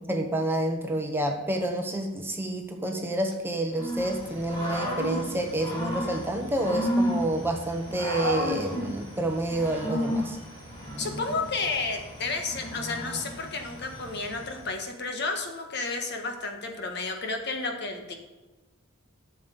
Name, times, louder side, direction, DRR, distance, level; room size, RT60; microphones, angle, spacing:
voice 1, 0.1-10.4, right 1 dB, 10° right, 3 dB, 1.0 m, -29 dB
Growling / Cricket, 3.7-14.7, equal, 25° left, 3.6 m, -33 dB
voice 2, 11.0-18.1, left 3 dB, 50° left, 4 dB, 1.6 m, -32 dB
12.5 x 7.2 x 5.4 m, 1.2 s
head